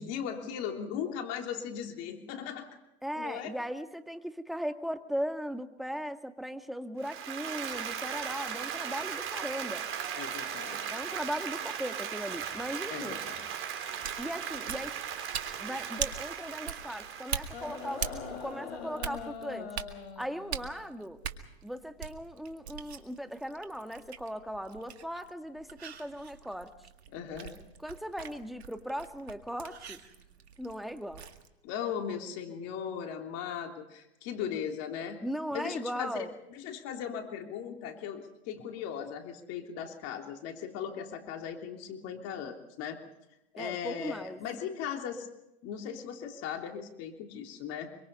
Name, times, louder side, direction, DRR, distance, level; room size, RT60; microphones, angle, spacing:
voice 1, 0.0-2.7 3.2-3.6 10.2-10.8 12.9-13.4 27.1-27.5 31.6-35.2 35.5-43.0 43.5-45.3 45.6-47.9, left 8 dB, 50° left, 3 dB, 3.3 m, -38 dB
voice 2, 3.0-9.8 10.9-13.2 14.2-14.9 15.6-19.8 20.2-21.2 21.6-26.7 27.8-30.0 30.6-31.2 35.2-36.3 43.6-44.4, equal, ahead, 6 dB, 2.0 m, -38 dB
Applause, 7.0-18.3, right 8 dB, 40° right, 4.7 m, -38 dB
sound 1, 13.9-31.5, right 7 dB, 90° right, 2.2 m, -42 dB
sound 2, 17.5-20.9 22.0-22.1, left 6 dB, 80° left, 5.1 m, -42 dB
26.0 x 24.0 x 5.5 m, 0.89 s
hypercardioid pair, 100°, 31 cm